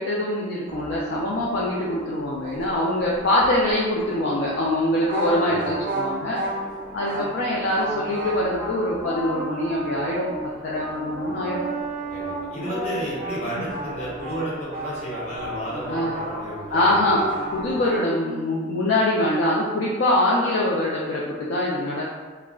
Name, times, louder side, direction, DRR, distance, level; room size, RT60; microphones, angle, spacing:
voice 1, 0.0-6.4 6.9-10.3 10.6-11.7 12.6-12.7 13.4-13.6 15.9-16.1 16.7-17.2 17.5-22.2, left 1 dB, 65° left, -5 dB, 0.4 m, -24 dB
sound 1, 0.7-18.1, right 1 dB, 45° right, 0.4 m, -33 dB
voice 2, 12.1-17.3, right 1 dB, 35° left, -8 dB, 1.0 m, -32 dB
2.3 x 2.1 x 3.6 m, 1.4 s
head